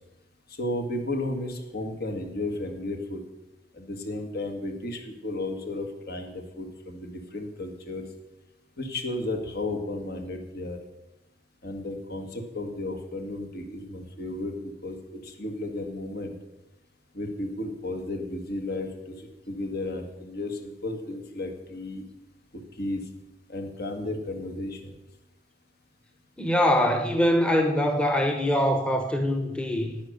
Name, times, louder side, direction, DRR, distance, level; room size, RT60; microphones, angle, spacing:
voice 1, 0.6-3.2 3.7-8.1 8.8-10.8 11.6-16.4 17.1-18.9 19.2-22.1 22.8-23.0 23.5-24.9, left 2 dB, 55° left, 5 dB, 1.8 m, -33 dB
voice 2, 26.4-30.0, equal, 5° left, 4 dB, 1.0 m, -23 dB
10.5 x 9.3 x 6.6 m, 0.96 s
head